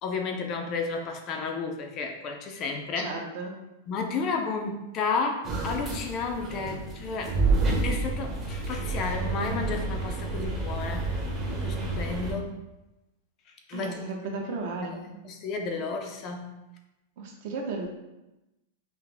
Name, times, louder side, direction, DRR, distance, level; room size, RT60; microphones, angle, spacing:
voice 1, 0.0-3.1 3.9-7.4 7.7-11.2 11.5-12.5 13.7-14.1 14.5-14.9 15.2-16.5, left 4 dB, 25° left, 3 dB, 0.4 m, -32 dB
voice 2, 3.0-3.5 13.7-15.0 17.2-17.9, right 3 dB, 50° right, 1 dB, 0.8 m, -34 dB
sound 1, 5.4-12.3, right 3 dB, 20° right, 0.8 m, -29 dB
5.5 x 2.0 x 3.3 m, 0.98 s
supercardioid pair, 170°, 0 cm